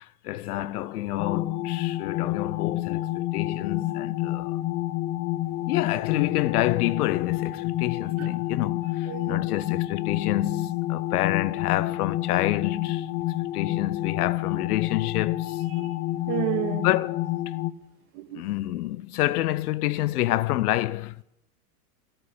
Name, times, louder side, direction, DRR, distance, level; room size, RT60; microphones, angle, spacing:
voice 1, 0.0-4.6 5.7-13.1 13.5-15.6 16.8-17.3 18.3-21.2, left 15 dB, 80° left, 0.8 m, -28 dB
sound 1, 1.2-17.7, left 16 dB, 40° left, 0.9 m, -29 dB
voice 2, 9.1-9.4 15.7-15.9 16.3-16.9 18.1-18.4, right 12 dB, 45° right, 1.9 m, -31 dB
15.5 x 8.8 x 8.5 m
supercardioid pair, 140°, 45 cm